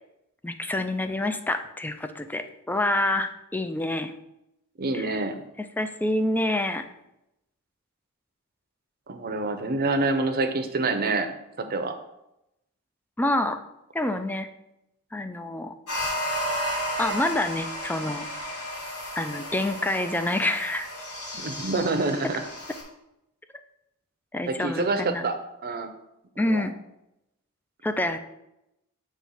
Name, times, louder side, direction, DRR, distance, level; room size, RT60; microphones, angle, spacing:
voice 1, 0.4-4.1 4.9-5.2 5.8-6.9 13.2-13.6 13.9-14.5 15.1-15.7 17.0-18.3 19.2-20.9 24.3-25.3 26.4-26.7 27.8-28.2, left 1 dB, 10° left, 8 dB, 0.4 m, -27 dB
voice 2, 4.8-5.4 9.1-11.3 11.6-11.9 21.4-22.4 24.5-25.3 25.6-25.9 26.4-26.6, right 3 dB, 45° right, 6 dB, 0.7 m, -27 dB
sound 1, 15.9-22.8, equal, 80° left, 2.6 m, -33 dB
7.3 x 3.1 x 5.6 m, 0.86 s
head